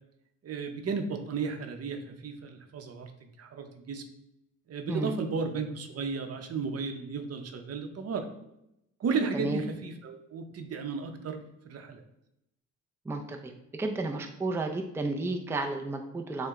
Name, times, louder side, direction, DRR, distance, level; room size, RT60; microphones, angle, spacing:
voice 1, 0.4-4.1 4.7-8.3 9.0-12.0, right 5 dB, 55° right, 5 dB, 0.7 m, -34 dB
voice 2, 13.1-16.5, right 2 dB, 10° right, 3 dB, 0.4 m, -32 dB
6.5 x 2.2 x 3.6 m, 0.83 s
cardioid pair, 90°, 30 cm